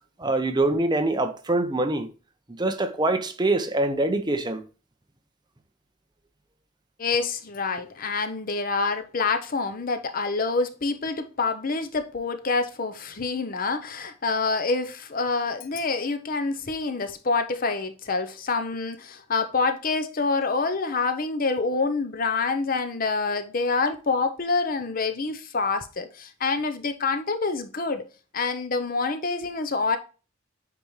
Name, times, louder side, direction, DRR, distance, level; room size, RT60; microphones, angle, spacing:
voice 1, 0.2-2.1 2.5-4.6, right 2 dB, 20° right, 0.8 m, -24 dB
voice 2, 7.0-28.1 28.3-30.0, left 4 dB, 45° left, 0.8 m, -27 dB
8.4 x 4.3 x 3.1 m
head